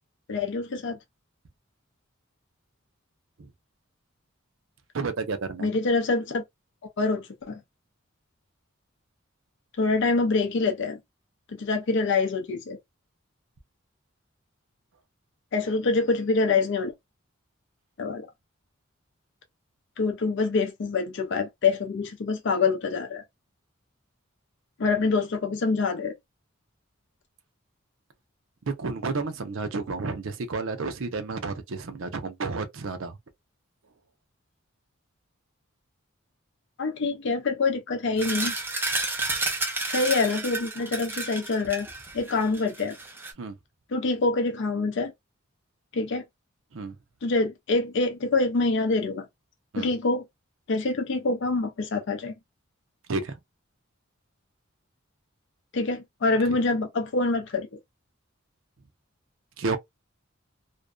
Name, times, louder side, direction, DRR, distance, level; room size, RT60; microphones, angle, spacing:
voice 1, 0.3-1.0 5.6-6.4 7.0-7.6 9.8-11.0 11.6-12.8 15.5-16.9 18.0-18.3 20.0-23.2 24.8-26.1 36.8-38.5 39.9-41.9 42.1-43.0 43.9-45.1 45.9-46.2 47.2-49.2 49.8-50.2 50.7-52.3 55.7-57.7, left 3 dB, 60° left, 0.4 m, -25 dB
voice 2, 4.9-5.7 28.7-33.2 43.4-43.6 46.7-47.0 49.7-49.9 53.1-53.4 56.5-56.6 59.6-59.8, right 4 dB, 70° right, 0.6 m, -31 dB
sound 1, 38.2-43.3, right 2 dB, 10° right, 0.5 m, -31 dB
2.5 x 2.2 x 2.3 m
head